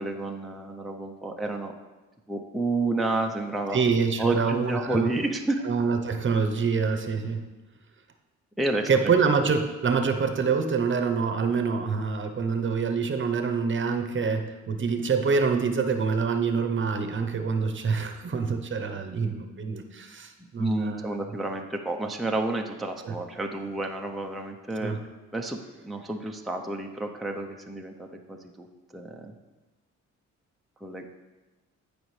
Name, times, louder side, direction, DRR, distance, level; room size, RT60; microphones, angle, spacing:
voice 1, 0.0-1.7 2.3-3.8 4.2-5.6 8.6-9.1 20.6-24.9 25.3-25.6 25.8-28.7 28.9-29.3 30.8-31.1, right 2 dB, ahead, 2 dB, 0.6 m, -30 dB
voice 2, 3.7-5.1 5.6-7.4 8.9-21.1 23.0-23.2 24.8-25.0, right 5 dB, 40° right, 6 dB, 0.9 m, -26 dB
14.0 x 5.1 x 3.2 m, 1.2 s
cardioid pair, 90°, 30 cm